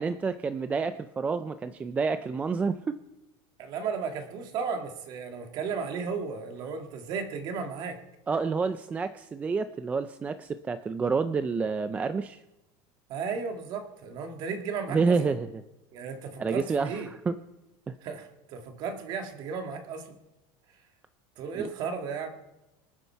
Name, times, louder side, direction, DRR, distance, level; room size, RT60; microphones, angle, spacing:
voice 1, 0.0-3.0 8.3-12.4 14.9-15.5 16.4-16.9 17.3-17.4 17.9-18.0 21.5-21.7, right 4 dB, 10° right, 11 dB, 0.4 m, -28 dB
voice 2, 3.6-8.0 13.1-15.2 15.9-17.1 18.0-20.2 21.4-22.5, right 5 dB, 40° right, 5 dB, 2.0 m, -34 dB
25.5 x 9.7 x 4.6 m, 0.99 s
cardioid pair, 175°, 12 cm